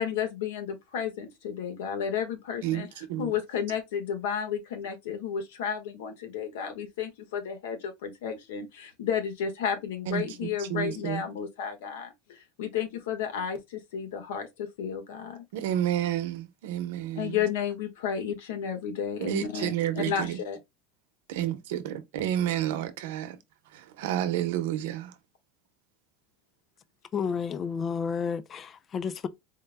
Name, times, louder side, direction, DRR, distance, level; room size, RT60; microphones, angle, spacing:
voice 1, 0.0-2.9 3.2-15.4 17.1-20.6, left 8 dB, 85° left, 1.2 m, -32 dB
voice 2, 2.6-3.4 10.1-11.2 15.5-17.4 19.2-20.4 21.3-23.4 23.7-25.1, right 12 dB, 80° right, 0.7 m, -30 dB
voice 3, 27.1-29.3, left 6 dB, 25° left, 0.3 m, -31 dB
4.4 x 2.1 x 3.4 m
supercardioid pair, 145°, 0 cm